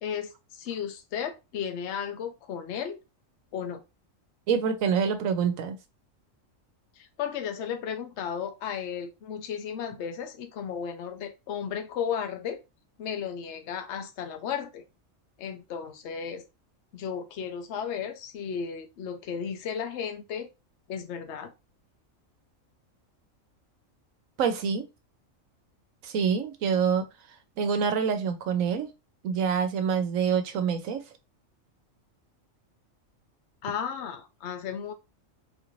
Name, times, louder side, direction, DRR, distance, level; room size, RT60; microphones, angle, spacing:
voice 1, 0.0-3.0 3.5-3.8 7.0-12.6 13.0-14.8 15.4-16.4 16.9-20.5 20.9-21.5 33.6-34.9, left 7 dB, 60° left, 0.9 m, -34 dB
voice 2, 4.5-5.8 24.4-24.9 26.0-27.1 27.6-28.9 29.2-31.0, right 6 dB, 80° right, 1.1 m, -26 dB
4.0 x 2.5 x 3.0 m
omnidirectional pair, 1.4 m